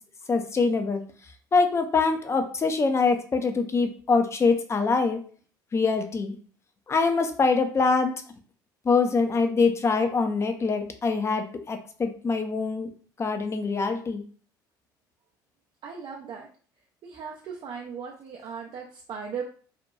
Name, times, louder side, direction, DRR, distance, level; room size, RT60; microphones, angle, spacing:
voice 1, 0.3-1.0 1.5-5.2 5.7-6.3 6.9-8.1 8.9-12.9 13.2-14.2, left 4 dB, 25° left, 6 dB, 0.4 m, -24 dB
voice 2, 15.8-16.5 17.0-19.4, right 6 dB, 45° right, 0 dB, 0.4 m, -37 dB
2.8 x 2.2 x 2.2 m, 0.43 s
figure-of-eight pair, 60°, 11 cm